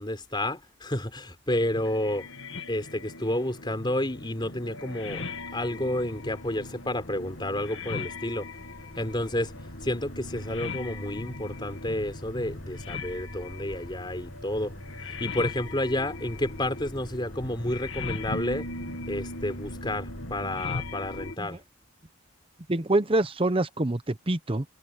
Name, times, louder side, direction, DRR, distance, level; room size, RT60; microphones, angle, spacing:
voice 1, 0.0-2.3 2.7-5.2 5.5-8.5 9.0-9.5 9.8-14.7 15.2-18.7 19.1-21.6, left 1 dB, 20° left, 4.6 m, -30 dB
sound 1, 1.5-21.4, left 3 dB, 65° left, 2.0 m, -39 dB
sound 2, 5.0-21.3, equal, 40° left, 6.2 m, -45 dB
voice 2, 22.7-24.6, right 2 dB, 25° right, 0.8 m, -25 dB
head